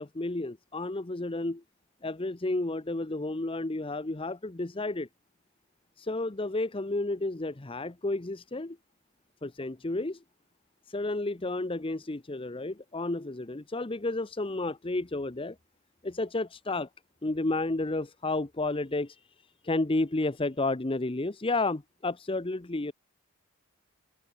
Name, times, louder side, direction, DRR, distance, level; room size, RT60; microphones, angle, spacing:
voice 1, 0.0-1.6 2.0-5.1 6.0-8.8 9.4-10.2 10.9-15.6 16.0-16.9 17.2-19.2 19.6-22.9, left 2 dB, 25° left, 0.8 m, -31 dB
head